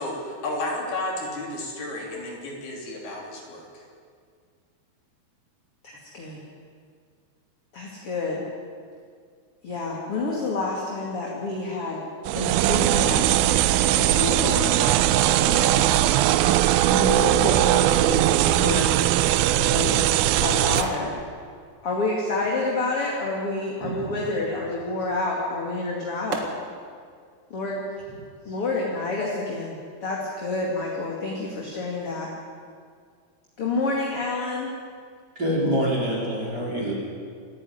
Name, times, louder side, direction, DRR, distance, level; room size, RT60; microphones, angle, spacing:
voice 1, 0.0-3.8, left 2 dB, 65° left, -1 dB, 5.1 m, -32 dB
voice 2, 5.8-6.4 7.7-8.4 9.6-12.0 12.3-13.5 13.9-15.9 16.9-18.9 19.6-21.1 21.8-26.4 27.5-27.8 28.4-32.3 33.6-34.7, left 2 dB, 40° left, -2 dB, 2.8 m, -29 dB
sound 1, 12.3-20.8, right 14 dB, 80° right, 2.2 m, -20 dB
sound 2, 19.4-23.3 25.4-25.5 26.3-27.0 27.5-27.6, right 4 dB, 50° right, 1.7 m, -39 dB
voice 3, 19.6-20.0 23.8-23.9 35.3-36.9, equal, 25° right, -4 dB, 4.6 m, -26 dB
27.0 x 10.5 x 9.7 m, 2.1 s
omnidirectional pair, 4.9 m